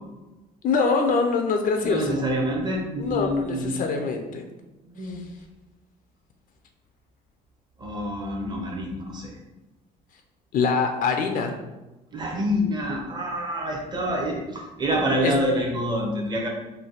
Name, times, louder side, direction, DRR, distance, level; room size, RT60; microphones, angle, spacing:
voice 1, 0.6-2.2 3.0-4.5 5.0-5.1 10.5-11.5 15.2-15.3, left 4 dB, 55° left, 4 dB, 0.4 m, -24 dB
voice 2, 1.8-3.7 4.8-5.3 7.8-9.4 12.1-16.5, equal, 25° right, 0 dB, 0.8 m, -27 dB
3.3 x 2.2 x 3.9 m, 1.1 s
cardioid pair, 110°, 17 cm